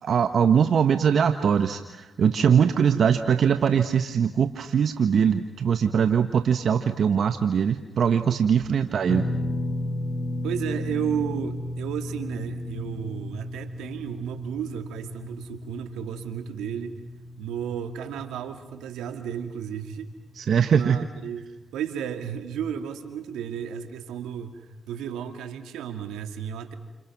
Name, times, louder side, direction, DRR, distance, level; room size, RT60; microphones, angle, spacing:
voice 1, 0.0-9.3 20.4-21.0, right 7 dB, 70° right, 8 dB, 1.3 m, -21 dB
sound 1, 9.1-21.3 21.6-21.8 23.5-23.6, left 1 dB, 45° left, 2.0 m, -34 dB
voice 2, 10.4-17.0 17.4-20.1 20.7-26.7, right 8 dB, 90° right, 8 dB, 2.3 m, -33 dB
29.5 x 29.0 x 6.1 m, 1.1 s
supercardioid pair, 50°, 0 cm